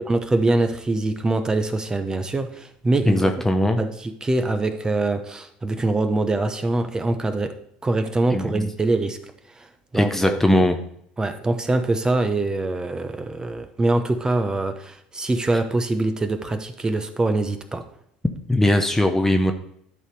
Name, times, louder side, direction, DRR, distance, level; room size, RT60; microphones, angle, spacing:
voice 1, 0.1-3.3 3.8-7.5 7.8-9.2 9.6-9.7 9.9-10.7 11.2-17.8, right 2 dB, 20° right, 8 dB, 0.9 m, -24 dB
voice 2, 3.1-3.8 8.3-8.7 9.9-10.8 18.5-19.5, left 1 dB, 10° left, 6 dB, 0.7 m, -20 dB
11.0 x 4.2 x 4.8 m, 0.71 s
hypercardioid pair, 80°, 4 cm